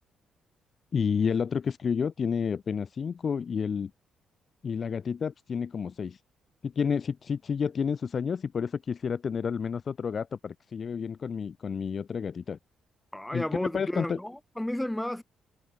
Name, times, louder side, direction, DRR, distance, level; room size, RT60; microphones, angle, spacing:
voice 1, 0.9-3.9 4.6-6.2 6.6-12.6 13.3-14.2, left 6 dB, 45° left, 2.5 m, -30 dB
voice 2, 13.1-15.2, left 1 dB, 5° left, 7.1 m, -32 dB
cardioid pair, 90°, 0 cm